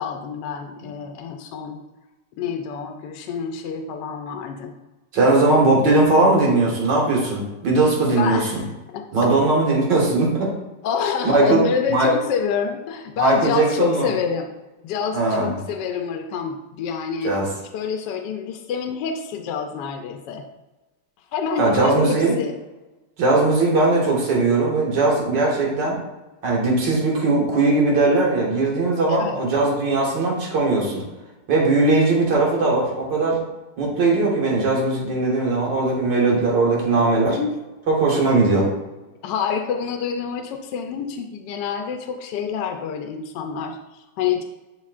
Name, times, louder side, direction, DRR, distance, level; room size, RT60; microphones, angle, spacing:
voice 1, 0.0-1.8 2.4-4.7 8.1-9.3 10.8-14.5 14.8-17.3 17.7-20.4 21.3-22.5 29.1-29.5 37.3-37.5 39.2-44.4, left 6 dB, 80° left, 4 dB, 1.2 m, -27 dB
voice 2, 5.1-8.6 9.1-10.5 11.2-11.6 11.9-12.1 13.2-14.1 15.1-15.5 17.2-17.5 21.6-22.3 23.2-26.0 26.4-31.0 31.5-33.4 33.8-37.4 37.9-38.7, right 2 dB, 90° right, -3 dB, 2.2 m, -19 dB
10.5 x 3.6 x 2.4 m, 1.1 s
omnidirectional pair, 1.9 m